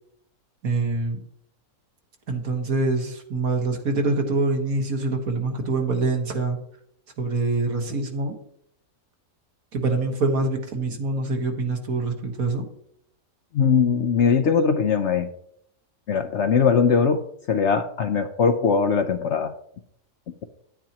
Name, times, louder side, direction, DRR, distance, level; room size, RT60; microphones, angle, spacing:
voice 1, 0.6-1.2 2.3-6.6 7.2-8.4 9.7-12.7, right 3 dB, 65° right, 3 dB, 1.8 m, -25 dB
voice 2, 13.5-15.3 16.1-17.2 17.5-19.5 20.3-20.4, left 6 dB, 65° left, 8 dB, 0.7 m, -20 dB
10.5 x 9.2 x 2.9 m, 0.70 s
omnidirectional pair, 1.6 m